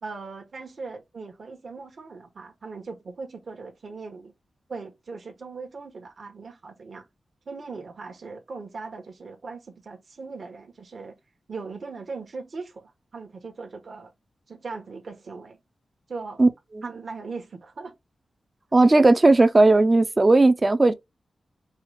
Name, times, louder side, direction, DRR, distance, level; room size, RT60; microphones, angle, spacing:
voice 1, 0.0-4.3 4.7-7.0 7.4-11.2 11.5-14.1 14.5-15.6 16.1-16.4 16.8-17.9, right 4 dB, 55° right, 1.2 m, -39 dB
voice 2, 18.7-20.9, right 2 dB, 25° right, 0.5 m, -16 dB
4.7 x 2.3 x 3.1 m
wide cardioid pair, 110°, 0 cm